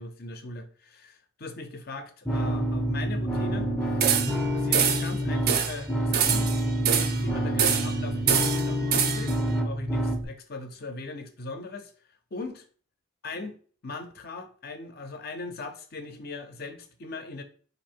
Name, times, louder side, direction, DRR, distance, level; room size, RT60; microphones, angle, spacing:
voice 1, 0.0-6.5 6.9-9.4 9.6-11.9 12.3-12.6 13.2-13.5 13.8-17.4, left 3 dB, 50° left, 7 dB, 0.7 m, -39 dB
sound 1, 2.2-10.2, equal, 5° left, 0.6 m, -28 dB
sound 2, 4.0-4.4 4.7-5.1 5.5-5.8 6.1-7.2 7.6-8.0 8.3-9.4, right 8 dB, 50° right, 0.5 m, -25 dB
4.5 x 2.7 x 4.4 m, 0.43 s
head